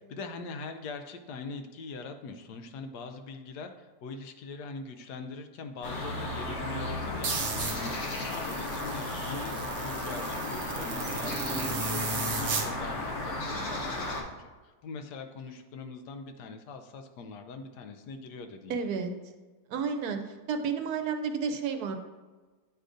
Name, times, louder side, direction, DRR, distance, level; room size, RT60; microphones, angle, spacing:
voice 1, 0.1-8.0 8.3-18.8, left 4 dB, 80° left, 7 dB, 1.2 m, -42 dB
sound 1, 5.8-14.2, left 2 dB, 55° left, 1.3 m, -34 dB
sound 2, 7.2-12.7, right 4 dB, 55° right, 0.7 m, -35 dB
voice 2, 18.7-19.1 19.7-20.2 20.5-22.0, right 5 dB, 70° right, 6 dB, 1.1 m, -31 dB
9.1 x 4.9 x 2.6 m, 1.3 s
omnidirectional pair, 1.7 m